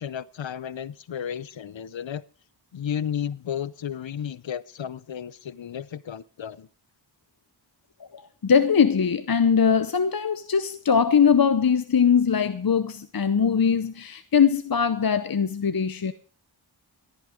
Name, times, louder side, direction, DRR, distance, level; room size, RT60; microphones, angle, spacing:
voice 1, 0.0-2.2 2.7-6.7, left 8 dB, 85° left, 0.7 m, -33 dB
voice 2, 8.0-16.1, left 6 dB, 55° left, 0.8 m, -21 dB
14.5 x 11.5 x 5.0 m
wide cardioid pair, 55°, 44 cm